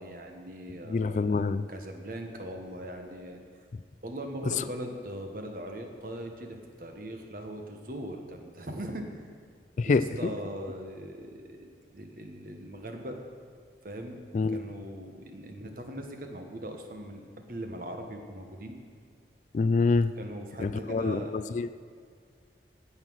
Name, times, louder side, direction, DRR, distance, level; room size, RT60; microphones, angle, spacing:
voice 1, 0.0-3.4 4.0-9.3 9.8-13.2 13.8-14.2 14.5-18.8 20.1-21.3, right 1 dB, 50° right, 4 dB, 1.3 m, -40 dB
voice 2, 0.9-1.6 4.6-4.7 9.8-10.3 14.3-14.6 19.5-20.1 20.6-21.7, left 4 dB, 40° left, 14 dB, 0.3 m, -26 dB
16.5 x 5.8 x 6.3 m, 2.1 s
head